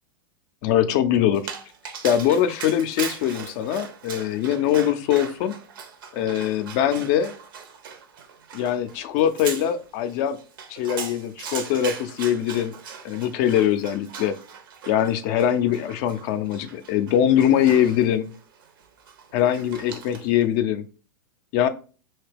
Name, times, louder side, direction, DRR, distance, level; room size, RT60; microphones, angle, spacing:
voice 1, 0.6-1.5 2.0-5.5 6.1-7.3 8.5-10.4 10.7-12.8 13.0-14.3 14.9-18.3 19.3-20.8 21.5-21.7, left 10 dB, 50° left, 10 dB, 0.5 m, -22 dB
Dog, 1.3-20.4, right 6 dB, 65° right, 0.7 m, -39 dB
2.8 x 2.8 x 3.4 m, 0.36 s
hypercardioid pair, 105°, 12 cm